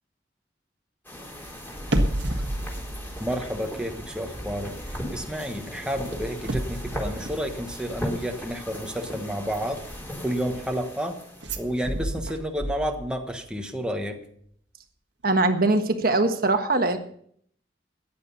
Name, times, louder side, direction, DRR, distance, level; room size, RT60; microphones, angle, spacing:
sound 1, 1.0-12.0, equal, 10° left, 3.7 m, -38 dB
sound 2, 1.8-4.1 4.3-4.6 5.9-8.2 11.4-13.3 13.6-13.7, right 1 dB, 85° right, 1.6 m, -30 dB
voice 1, 3.2-4.7 5.1-9.8 10.2-11.2 11.6-14.2, equal, 5° right, 3 dB, 1.3 m, -30 dB
voice 2, 15.2-17.0, right 2 dB, 55° right, 7 dB, 1.4 m, -22 dB
15.0 x 10.5 x 5.7 m, 0.63 s
head